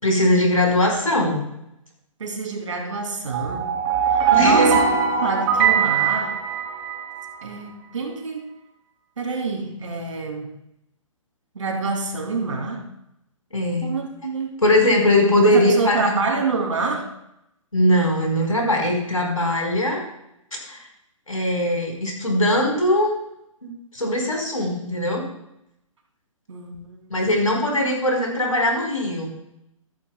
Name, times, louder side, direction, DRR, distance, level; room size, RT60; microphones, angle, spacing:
voice 1, 0.0-1.4 4.3-4.9 13.5-13.9 14.6-16.2 17.7-20.0 20.6-20.8 21.3-23.1 23.6-25.3 27.1-29.3, left 1 dB, 85° left, 0 dB, 4.5 m, -20 dB
voice 2, 2.2-6.4 7.4-8.5 9.2-10.6 11.5-12.9 13.8-14.6 15.4-17.2 26.5-27.1, right 4 dB, 65° right, 1 dB, 2.9 m, -27 dB
sound 1, 3.3-7.2, right 6 dB, 30° right, 2.3 m, -20 dB
14.5 x 14.0 x 2.3 m, 0.81 s
figure-of-eight pair, 125°, 17 cm